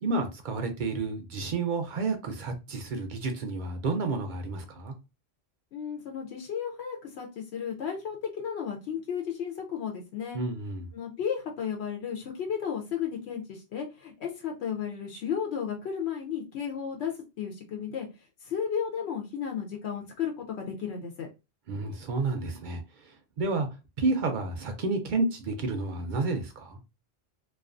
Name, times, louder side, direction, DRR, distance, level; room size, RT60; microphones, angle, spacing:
voice 1, 0.0-4.9 10.3-10.9 21.7-23.7 24.0-26.8, right 3 dB, 60° right, 0.6 m, -30 dB
voice 2, 5.7-10.4 10.9-18.1 18.4-21.3, left 7 dB, 80° left, 0.8 m, -34 dB
2.3 x 2.3 x 2.4 m
omnidirectional pair, 1.1 m